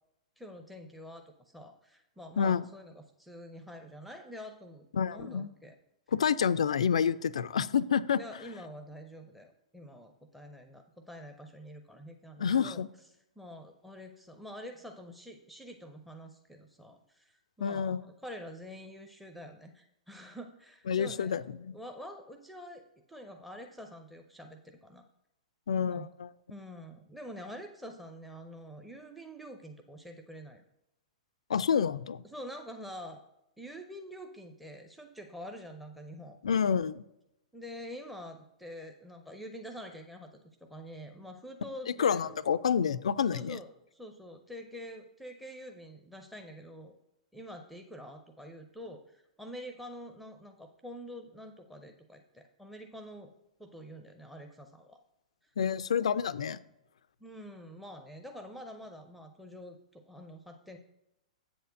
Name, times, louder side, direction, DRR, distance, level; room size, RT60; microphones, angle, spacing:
voice 1, 0.4-5.8 8.2-12.9 13.4-22.8 23.1-25.0 25.9-26.1 26.5-30.6 32.2-33.2 33.6-36.4 37.5-40.3 40.6-42.4 43.3-47.0 47.3-53.3 53.6-55.0 55.4-55.5 57.2-60.8, equal, ahead, 6 dB, 0.6 m, -46 dB
voice 2, 4.9-5.5 6.1-8.2 12.4-12.9 17.6-18.0 20.9-21.7 25.7-26.3 31.5-32.2 36.4-37.0 41.9-43.6 55.6-56.6, left 7 dB, 60° left, 16 dB, 0.4 m, -28 dB
8.0 x 4.4 x 6.4 m, 0.86 s
figure-of-eight pair, 105°, 4 cm